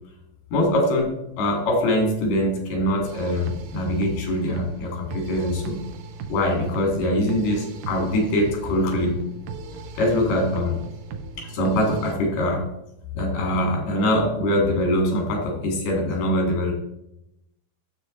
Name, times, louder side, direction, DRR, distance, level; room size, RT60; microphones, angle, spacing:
voice 1, 0.5-5.8 6.3-9.2 10.0-10.8 11.4-12.7 13.1-16.7, left 1 dB, 90° left, 0 dB, 4.2 m, -23 dB
sound 1, 3.0-12.1, right 4 dB, 75° right, 2.0 m, -37 dB
9.6 x 7.5 x 3.9 m, 0.86 s
omnidirectional pair, 4.3 m